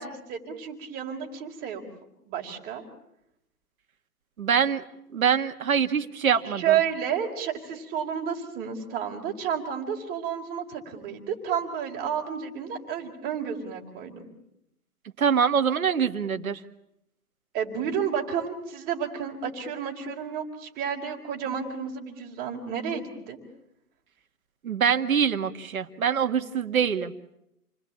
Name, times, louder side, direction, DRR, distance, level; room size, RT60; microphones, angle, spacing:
voice 1, 0.0-1.8 2.3-2.8 6.4-14.2 17.5-23.4, right 8 dB, 20° right, 1 dB, 4.1 m, -31 dB
voice 2, 4.4-4.8 5.1-6.8 15.2-16.6 24.6-27.1, right 7 dB, 60° right, 8 dB, 2.1 m, -24 dB
29.0 x 21.5 x 8.8 m, 0.81 s
hypercardioid pair, 145°, 46 cm